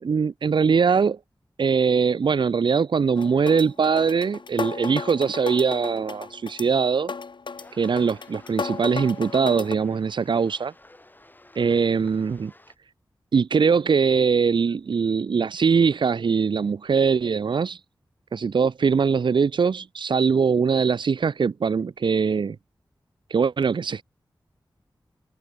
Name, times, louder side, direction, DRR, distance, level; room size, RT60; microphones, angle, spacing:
voice 1, 0.0-1.2 1.6-7.1 7.7-10.7 11.6-12.5 13.3-17.8 18.3-22.6 23.3-24.0, right 5 dB, 75° right, 0.6 m, -22 dB
sound 1, 3.2-9.8, left 4 dB, 75° left, 2.0 m, -34 dB
sound 2, 7.6-12.8, left 1 dB, 25° left, 3.9 m, -52 dB
wide cardioid pair, 65°, 8 cm